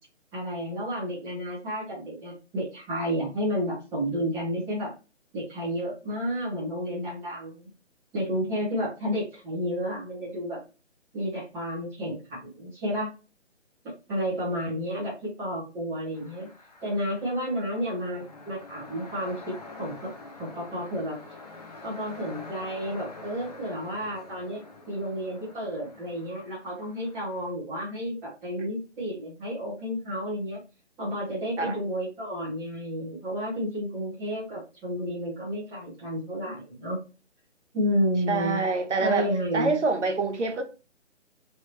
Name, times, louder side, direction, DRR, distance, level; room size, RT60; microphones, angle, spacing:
voice 1, 0.3-4.9 5.3-7.7 8.1-10.6 11.1-13.1 14.1-16.5 16.8-20.1 20.4-21.2 21.8-24.6 24.9-30.6 31.0-37.0 37.7-38.6 39.0-39.7, equal, 5° right, 0.7 m, -31 dB
sound 1, 16.1-27.5, left 3 dB, 35° left, 0.5 m, -46 dB
voice 2, 38.3-39.3 39.5-40.6, right 4 dB, 70° right, 0.9 m, -26 dB
3.2 x 2.8 x 2.9 m
figure-of-eight pair, 150°, 36 cm